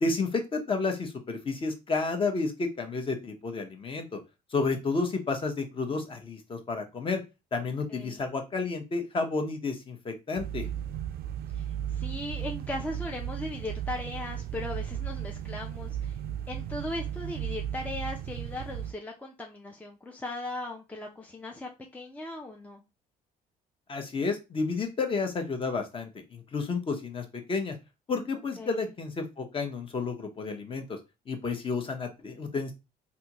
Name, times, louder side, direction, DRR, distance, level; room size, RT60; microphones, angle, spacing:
voice 1, 0.0-4.2 4.5-7.2 7.5-10.6 23.9-27.7 28.1-31.0 31.3-32.7, left 4 dB, 30° left, 0.8 m, -31 dB
voice 2, 7.9-8.2 11.5-16.2 16.5-22.8 28.6-28.9, left 2 dB, 10° left, 0.5 m, -38 dB
sound 1, 10.4-18.9, right 10 dB, 65° right, 0.4 m, -35 dB
3.5 x 2.6 x 2.9 m
cardioid pair, 110°, 17 cm